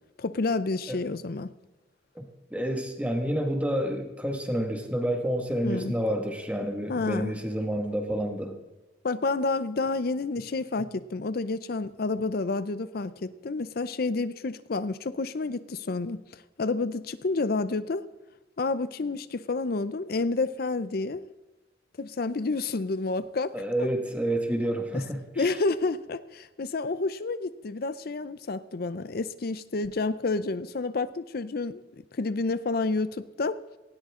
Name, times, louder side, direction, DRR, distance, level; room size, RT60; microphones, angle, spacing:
voice 1, 0.2-1.5 5.6-5.9 6.9-7.3 9.0-18.0 18.6-21.2 22.0-23.5 23.8-23.9 25.4-31.8 32.1-33.6, left 3 dB, 55° left, 14 dB, 0.5 m, -29 dB
voice 2, 2.5-8.6 23.5-25.5, right 1 dB, 10° right, 4 dB, 1.9 m, -29 dB
19.0 x 17.5 x 3.7 m, 1.1 s
head